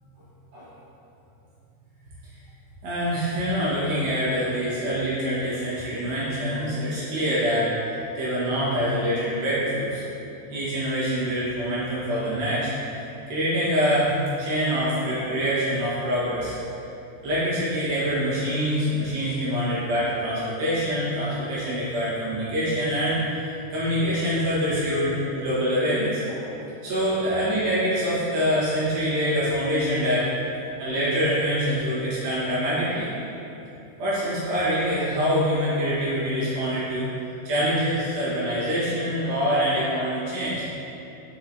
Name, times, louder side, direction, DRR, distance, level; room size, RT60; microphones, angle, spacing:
voice 1, 2.8-7.7 8.2-10.0 10.5-13.0 13.3-14.1 14.4-16.5 17.2-26.5 26.8-30.3 30.8-33.1 34.0-37.1 37.4-40.6, equal, 65° right, -10 dB, 3.2 m, -25 dB
8.4 x 4.6 x 3.0 m, 2.9 s
omnidirectional pair, 4.9 m